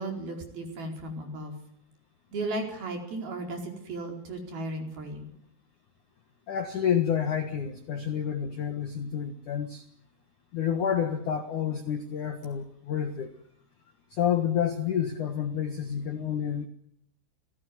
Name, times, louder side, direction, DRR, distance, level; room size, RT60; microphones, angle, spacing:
voice 1, 0.0-1.5 2.3-5.3, right 2 dB, 50° right, 3 dB, 6.2 m, -35 dB
voice 2, 6.5-9.8 10.5-13.3 14.1-16.7, left 8 dB, 60° left, 8 dB, 2.1 m, -29 dB
29.0 x 18.5 x 9.8 m, 0.69 s
omnidirectional pair, 5.9 m